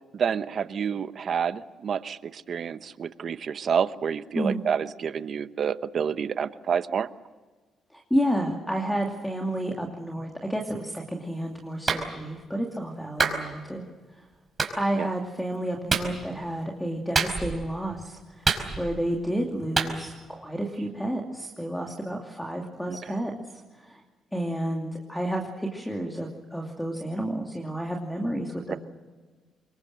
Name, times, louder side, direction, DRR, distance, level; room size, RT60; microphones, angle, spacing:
voice 1, 0.1-7.1 14.9-15.1 22.9-23.0 28.7-28.8, right 7 dB, 55° right, 13 dB, 1.0 m, -29 dB
voice 2, 7.9-13.8 14.7-23.3 23.8-24.0 24.3-28.8, right 1 dB, 5° left, 1 dB, 2.7 m, -30 dB
Clapping, 11.9-12.1 13.2-13.4 14.6-14.7 15.9-16.1 17.1-17.6 18.4-19.0 19.8-19.9, right 4 dB, 35° right, 4.9 m, -25 dB
25.5 x 22.5 x 7.7 m, 1.3 s
cardioid pair, 90°, 0 cm